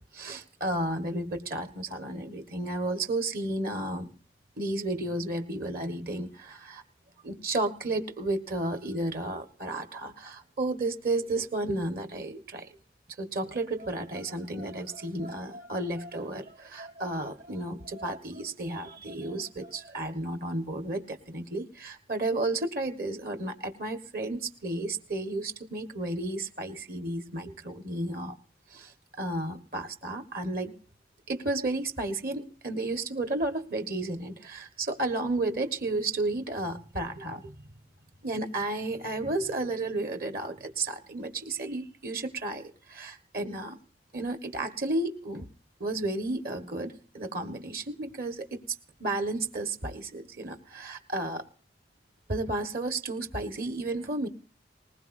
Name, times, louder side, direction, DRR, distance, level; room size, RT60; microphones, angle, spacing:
voice 1, 0.1-4.1 4.6-6.8 7.2-12.7 13.2-28.4 28.7-30.7 31.3-37.6 38.2-43.8 44.1-45.4 45.8-48.6 49.0-51.4 52.3-54.3, right 2 dB, 55° right, 8 dB, 1.5 m, -32 dB
20.0 x 20.0 x 2.6 m, 0.41 s
head